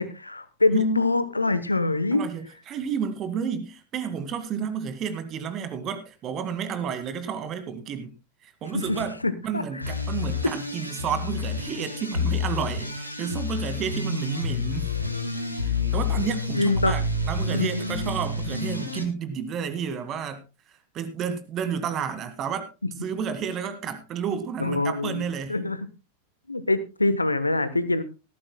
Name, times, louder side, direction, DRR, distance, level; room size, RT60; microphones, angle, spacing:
voice 1, 0.0-2.2 8.7-9.8 14.9-15.6 16.5-16.9 17.5-17.8 24.6-25.2 25.5-25.9 26.5-28.0, left 2 dB, 80° left, 13 dB, 1.1 m, -25 dB
voice 2, 2.1-8.1 8.4-9.2 9.4-14.9 15.6-20.4 20.9-22.7 23.0-25.6, right 7 dB, 30° right, 11 dB, 2.0 m, -31 dB
sound 1, 9.8-19.0, left 3 dB, 90° right, 2.1 m, -29 dB
17.5 x 14.0 x 2.2 m, 0.28 s
figure-of-eight pair, 90°, 0 cm